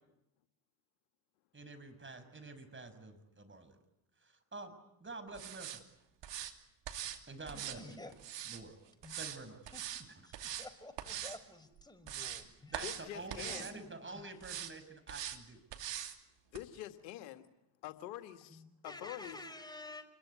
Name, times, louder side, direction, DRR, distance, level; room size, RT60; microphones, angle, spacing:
voice 1, 1.5-3.8 4.2-4.7 5.0-5.7 7.3-7.8 8.4-8.8 9.2-9.6 10.1-10.2 12.7-15.6, right 3 dB, 25° right, 9 dB, 6.2 m, -48 dB
sound 1, 5.3-5.8 6.2-6.5 6.8-7.2 7.5-8.6 9.0-9.4 9.6-10.0 10.3-10.7 11.0-11.4 11.8-12.4 12.7-13.0 13.3-13.7 14.4-14.7 15.1-15.4 15.7-16.1 16.5-16.6, right 11 dB, 55° right, 2.8 m, -42 dB
voice 2, 7.5-8.1 9.0-9.2 9.7-9.8 10.2-12.7 13.3-13.8 18.5-20.0, left 2 dB, 10° left, 7 dB, 5.1 m, -50 dB
voice 3, 12.8-13.7 16.5-17.4 17.8-19.4, left 13 dB, 75° left, 9 dB, 2.1 m, -46 dB
28.0 x 21.5 x 9.8 m, 0.84 s
hypercardioid pair, 55°, 50 cm